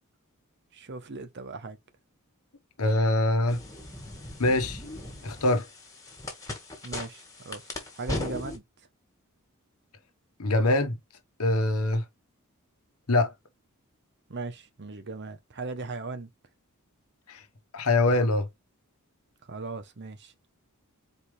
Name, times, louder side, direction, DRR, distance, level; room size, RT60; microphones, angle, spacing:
voice 1, 0.7-1.8 6.8-8.6 14.3-16.3 19.5-20.3, right 3 dB, 55° right, 0.8 m, -38 dB
voice 2, 2.8-3.6 4.4-4.8 5.2-5.7 10.4-11.0 11.4-12.0 13.1-13.3 17.3-17.4 17.7-18.5, left 2 dB, 90° left, 1.1 m, -23 dB
sound 1, 3.5-8.6, left 1 dB, 15° left, 1.5 m, -38 dB
4.4 x 3.2 x 3.3 m
head